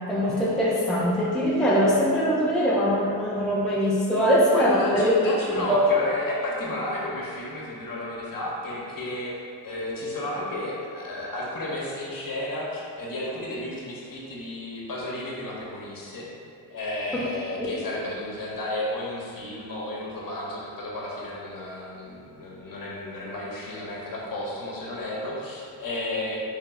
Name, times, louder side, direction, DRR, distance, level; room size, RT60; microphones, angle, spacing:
voice 1, 0.1-5.1 5.7-5.8 17.1-17.2, equal, ahead, -7 dB, 0.7 m, -22 dB
voice 2, 4.5-9.4 9.6-16.3 16.7-26.4, left 1 dB, 45° left, -4 dB, 1.1 m, -32 dB
3.5 x 2.9 x 3.6 m, 2.4 s
supercardioid pair, 55°, 48 cm